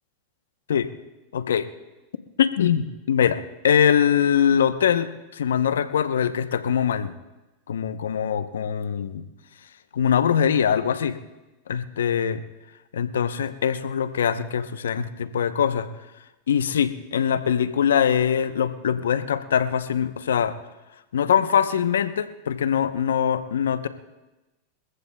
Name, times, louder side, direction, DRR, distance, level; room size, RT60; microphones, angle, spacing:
voice 1, 1.3-1.6 2.4-5.1 5.3-7.1 7.7-9.2 9.9-11.2 11.7-12.4 12.9-15.9 16.5-20.5 21.1-23.9, left 8 dB, 85° left, 12 dB, 0.7 m, -22 dB
28.0 x 14.5 x 2.2 m, 1.1 s
hypercardioid pair, 100°, 0 cm